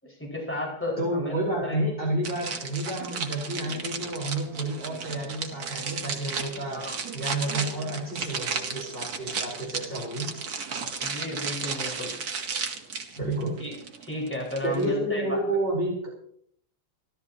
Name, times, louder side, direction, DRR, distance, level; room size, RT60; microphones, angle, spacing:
voice 1, 0.0-1.8 6.7-7.0 11.0-12.1 13.6-13.7 14.0-15.4, left 1 dB, 5° left, -2 dB, 5.4 m, -33 dB
voice 2, 1.0-6.8 7.1-10.3 13.1-13.5 14.6-16.1, right 1 dB, 25° left, -5 dB, 4.4 m, -30 dB
sound 1, 2.2-14.9, right 5 dB, 55° right, 1.9 m, -34 dB
26.5 x 13.5 x 2.9 m, 0.65 s
omnidirectional pair, 2.1 m